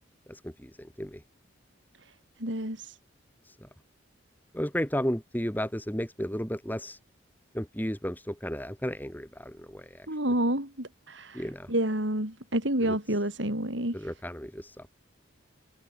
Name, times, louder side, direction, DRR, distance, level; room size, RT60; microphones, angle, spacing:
voice 1, 0.3-1.2 3.5-3.7 4.5-7.0 7.5-10.1 11.3-11.7 12.8-13.0 13.9-15.0, equal, 10° left, 3.4 m, -34 dB
voice 2, 2.4-2.9 10.1-11.4 11.7-13.9, right 1 dB, 70° right, 6.3 m, -29 dB
head